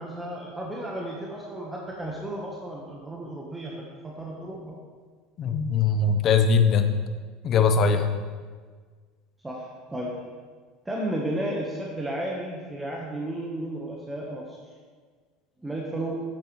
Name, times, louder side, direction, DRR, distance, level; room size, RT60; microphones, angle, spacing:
voice 1, 0.0-4.8 9.4-10.1 10.8-14.6 15.6-16.2, right 1 dB, 10° right, -2 dB, 1.1 m, -33 dB
voice 2, 5.4-7.0 7.4-8.1, left 5 dB, 45° left, 8 dB, 0.8 m, -21 dB
8.7 x 8.0 x 3.1 m, 1.6 s
supercardioid pair, 120°, 0 cm